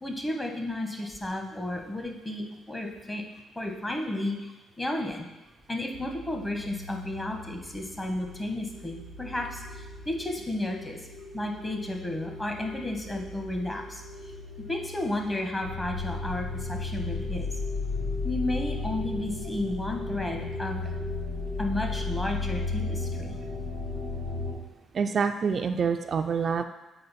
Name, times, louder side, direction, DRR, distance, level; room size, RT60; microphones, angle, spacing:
voice 1, 0.0-3.2 3.6-4.4 4.8-5.3 5.7-11.0 11.3-14.0 14.7-17.5 18.2-20.8 21.6-23.4, left 1 dB, 15° left, 2 dB, 1.1 m, -32 dB
sound 1, 5.9-24.5, left 3 dB, 80° left, 2.6 m, -35 dB
voice 2, 24.9-26.6, right 6 dB, 50° right, 7 dB, 0.3 m, -26 dB
7.7 x 4.3 x 4.1 m, 1.0 s
cardioid pair, 90°, 0 cm